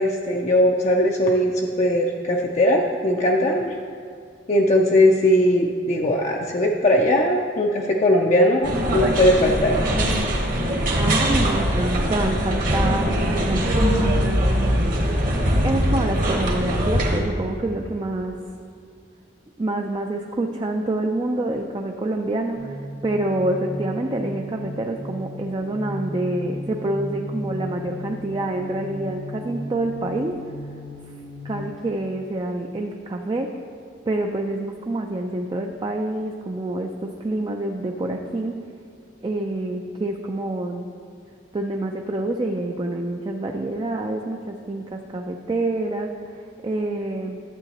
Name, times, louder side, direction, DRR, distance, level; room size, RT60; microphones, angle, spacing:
voice 1, 0.0-3.8 4.5-9.8, left 1 dB, 35° left, -1 dB, 0.5 m, -19 dB
sound 1, 8.6-17.2, equal, 50° right, 1.2 m, -22 dB
voice 2, 10.9-14.2 15.6-18.3 19.6-30.4 31.4-33.5 34.1-38.6 39.2-40.9 41.5-46.2 46.6-47.4, right 2 dB, 25° right, 2 dB, 0.4 m, -27 dB
sound 2, 22.5-31.9, equal, 85° left, 2.2 m, -35 dB
11.5 x 8.0 x 2.9 m, 2.4 s
head